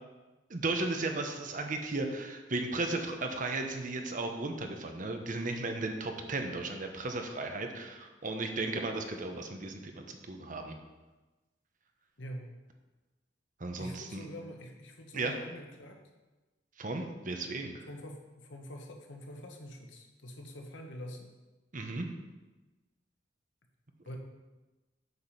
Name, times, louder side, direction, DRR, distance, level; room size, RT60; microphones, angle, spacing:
voice 1, 0.5-10.8 13.6-14.3 15.1-15.3 16.8-17.9 21.7-22.1, right 2 dB, 45° right, 5 dB, 0.9 m, -35 dB
voice 2, 12.2-12.5 13.8-16.0 17.9-21.3 24.0-24.2, equal, 85° left, 2 dB, 1.3 m, -45 dB
8.0 x 5.1 x 5.7 m, 1.2 s
head